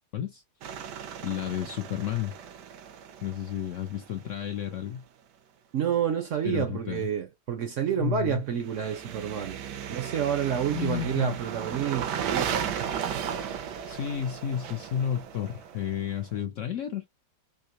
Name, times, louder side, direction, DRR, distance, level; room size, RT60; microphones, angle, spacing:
sound 1, 0.6-4.5 8.6-16.3, right 8 dB, 85° right, 1.3 m, -35 dB
voice 1, 1.2-2.3 3.2-5.0 6.4-7.1 8.0-8.4 10.7-11.4 13.9-17.0, left 10 dB, 70° left, 0.7 m, -32 dB
voice 2, 5.7-9.6 9.9-12.7, right 9 dB, 65° right, 0.8 m, -29 dB
3.6 x 2.7 x 2.8 m
omnidirectional pair, 1.8 m